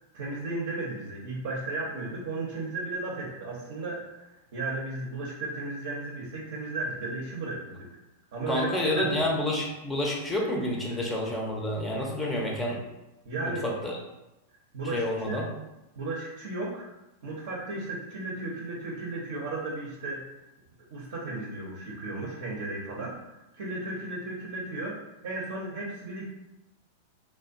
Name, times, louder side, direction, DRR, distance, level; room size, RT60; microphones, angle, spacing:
voice 1, 0.1-8.0 8.3-9.2 10.9-11.0 13.3-13.7 14.7-15.4 16.0-16.9 17.2-20.3 20.9-23.2 23.5-26.2, right 2 dB, 65° right, -4 dB, 0.5 m, -35 dB
voice 2, 8.5-12.8 13.4-14.0 14.9-15.5, left 1 dB, 15° left, -2 dB, 0.5 m, -29 dB
2.4 x 2.1 x 2.4 m, 0.96 s
figure-of-eight pair, 95°, 0 cm